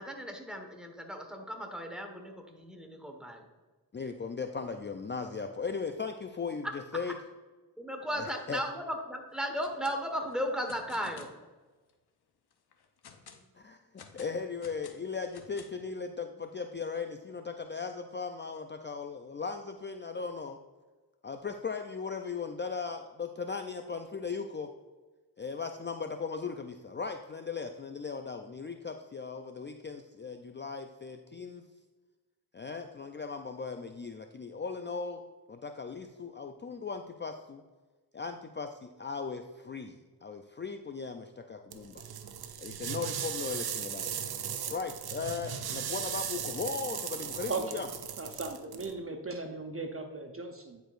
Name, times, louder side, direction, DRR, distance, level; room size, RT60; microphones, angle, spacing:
voice 1, 0.0-3.5 6.6-6.7 7.8-11.3, equal, ahead, 3 dB, 1.4 m, -36 dB
voice 2, 3.9-7.1 8.1-8.6 13.5-20.6 21.2-24.7 25.4-31.6 32.5-35.2 35.5-37.6 38.1-42.1 42.6-44.2 44.7-47.9, left 5 dB, 30° left, 6 dB, 0.4 m, -38 dB
sound 1, 9.5-10.0 10.3-11.4 11.9-12.0 12.5-13.4 14.0-15.9, left 6 dB, 75° left, 0.8 m, -52 dB
sound 2, 41.7-48.9, right 8 dB, 70° right, 0.6 m, -37 dB
voice 3, 48.2-50.8, right 3 dB, 35° right, 5 dB, 0.7 m, -37 dB
9.9 x 4.6 x 2.5 m, 1.3 s
cardioid pair, 50°, 39 cm